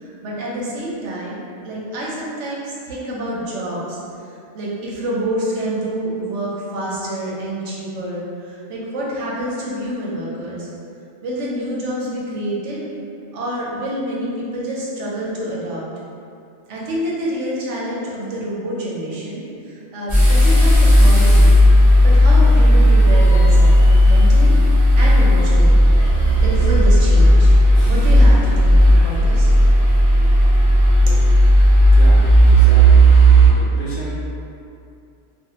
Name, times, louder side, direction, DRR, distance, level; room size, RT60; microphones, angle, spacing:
voice 1, 0.0-4.0 4.5-10.7 11.2-12.8 13.3-15.8 16.7-21.6 22.0-23.8 24.0-24.5 24.9-25.9 26.4-27.5 27.9-29.5 31.1-31.2, right 1 dB, 85° right, -5 dB, 1.0 m, -27 dB
sound 1, 20.1-33.5, equal, 30° right, 0.8 m, -12 dB
voice 2, 31.9-33.1 33.5-34.2, left 1 dB, 50° left, -7 dB, 0.6 m, -32 dB
2.4 x 2.4 x 2.8 m, 2.5 s
omnidirectional pair, 1.2 m